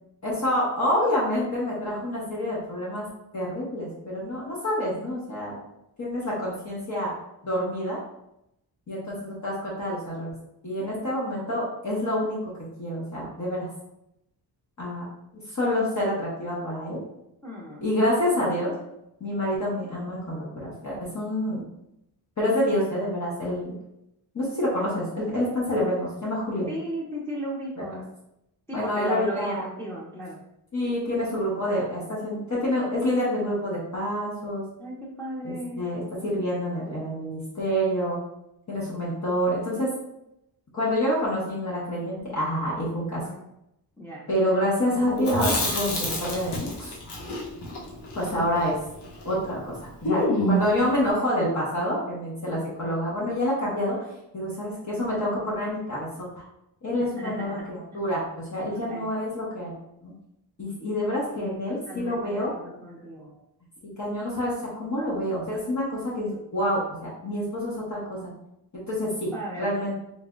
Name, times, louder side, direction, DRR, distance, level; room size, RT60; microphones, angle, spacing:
voice 1, 0.2-3.0 3.3-5.6 6.0-7.1 7.4-8.0 8.9-10.3 10.6-12.5 12.8-13.7 14.8-15.0 15.5-17.0 17.8-18.7 19.2-21.6 22.4-23.7 24.3-26.7 27.8-27.9 28.7-29.6 30.7-34.6 35.4-38.2 38.7-39.9 40.7-43.2 44.3-46.9 48.1-48.8 49.2-54.0 54.3-56.1 56.8-59.7 60.0-60.1 60.6-62.5 63.8-64.5 64.8-68.3 68.7-69.3 69.6-69.9, left 1 dB, 45° left, -7 dB, 1.4 m, -27 dB
voice 2, 17.4-17.9 18.4-18.5 26.7-28.1 28.7-30.4 34.8-35.9 43.2-43.4 44.0-44.3 52.5-53.0 57.2-57.7 57.9-58.0 58.7-59.1 61.3-63.4 69.3-69.9, right 1 dB, 5° left, -6 dB, 0.7 m, -36 dB
Chewing mastication, 45.2-49.4 49.6-49.7 50.0-50.8, equal, 90° left, 1.1 m, -28 dB
3.9 x 3.4 x 2.6 m, 0.82 s
wide cardioid pair, 125°, 39 cm